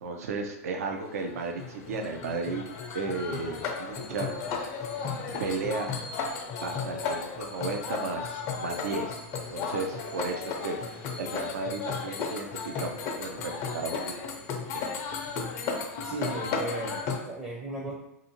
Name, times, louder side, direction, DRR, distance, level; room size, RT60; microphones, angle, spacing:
voice 1, 0.0-2.6 2.9-4.3 5.4-5.9 6.6-9.2 9.5-10.8 11.2-14.3 14.7-14.9, right 4 dB, 75° right, 3 dB, 0.4 m, -34 dB
sound 1, 1.0-17.2, left 5 dB, 40° left, 0.5 m, -34 dB
voice 2, 16.0-17.9, right 2 dB, 15° right, -3 dB, 0.5 m, -36 dB
2.5 x 2.5 x 2.8 m, 0.84 s
hypercardioid pair, 110°, 8 cm